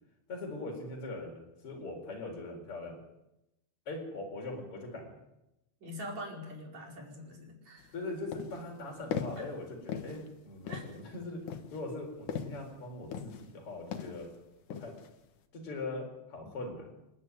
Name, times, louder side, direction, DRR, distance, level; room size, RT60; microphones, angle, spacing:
voice 1, 0.3-3.0 3.9-5.2 7.9-11.5 11.7-14.3 14.7-14.9 15.5-17.0, left 2 dB, 45° left, 0 dB, 5.1 m, -41 dB
voice 2, 5.8-8.0 9.4-9.5 10.7-10.9, equal, 65° right, 0 dB, 6.2 m, -44 dB
sound 1, 7.8-7.9 8.3-8.7 9.1-9.5 9.9-10.3 10.7-11.0 11.5-12.7 13.1-13.6 13.9-14.3 14.7-15.1, left 7 dB, 85° left, 3.0 m, -39 dB
29.0 x 11.5 x 9.6 m, 0.91 s
omnidirectional pair, 3.4 m